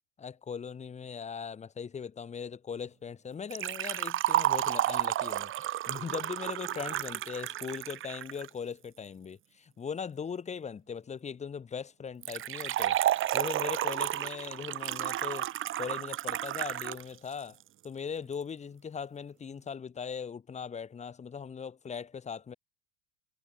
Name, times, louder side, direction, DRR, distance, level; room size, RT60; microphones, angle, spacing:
voice 1, 0.2-13.0 13.3-15.5 15.8-17.6 17.8-22.5, left 6 dB, 15° left, 3.8 m, -39 dB
Liquid, 3.5-8.5 12.2-17.0 17.3-17.4 18.3-18.4, right 13 dB, 30° right, 2.8 m, -31 dB
supercardioid pair, 150°, 40 cm